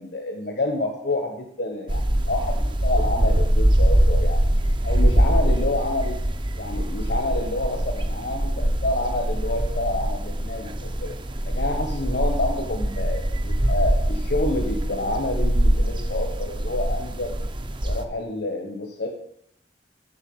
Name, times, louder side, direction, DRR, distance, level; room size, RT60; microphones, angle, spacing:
voice 1, 0.0-4.4 4.8-6.2 6.6-11.1 11.4-17.3 17.8-19.1, left 2 dB, 65° left, 1 dB, 1.4 m, -28 dB
sound 1, 1.9-18.0, right 1 dB, 25° right, 0.7 m, -23 dB
8.4 x 6.6 x 7.3 m, 0.73 s
head